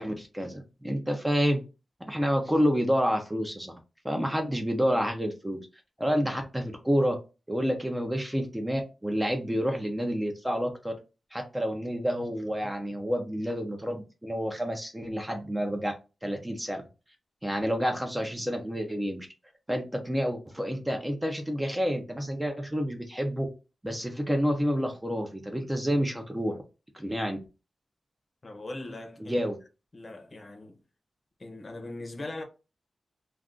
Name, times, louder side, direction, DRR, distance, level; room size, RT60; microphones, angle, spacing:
voice 1, 0.0-1.6 2.1-3.7 4.0-5.7 6.0-7.2 7.5-10.9 11.3-15.9 16.2-16.8 17.4-19.3 19.7-23.5 23.8-26.6 26.9-27.4 29.3-29.6, equal, 10° right, 0.4 m, -29 dB
voice 2, 28.4-29.4 29.9-30.8 31.4-32.4, left 2 dB, 35° left, 0.7 m, -40 dB
2.4 x 2.3 x 3.6 m
wide cardioid pair, 140°, 0 cm